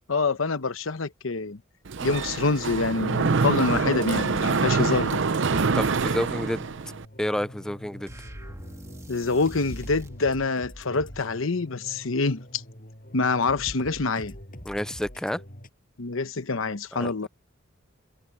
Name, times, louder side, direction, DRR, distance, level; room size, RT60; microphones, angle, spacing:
voice 1, 0.1-1.6 2.0-5.2 9.1-12.6 13.1-14.3 16.0-17.3, left 3 dB, 70° left, 1.0 m, -26 dB
Mechanisms, 1.9-7.0, right 4 dB, 60° right, 0.6 m, -25 dB
sound 1, 5.5-15.7, equal, 45° left, 7.1 m, -44 dB
voice 2, 5.5-6.6 7.2-8.1 14.7-15.4 16.9-17.1, equal, 5° left, 0.4 m, -30 dB
sound 2, 8.0-10.2, right 1 dB, 15° right, 1.5 m, -42 dB
head